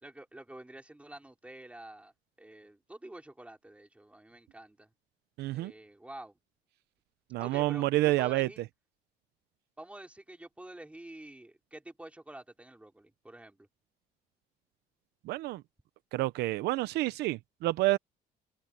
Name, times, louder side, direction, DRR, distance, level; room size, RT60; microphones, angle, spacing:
voice 1, 0.0-2.1 2.4-4.9 5.5-6.4 7.4-8.6 9.8-13.7, right 1 dB, 5° right, 4.9 m, -48 dB
voice 2, 5.4-5.7 7.3-8.5 15.2-15.6 16.1-18.0, right 17 dB, 80° right, 0.8 m, -28 dB
cardioid pair, 115°, 17 cm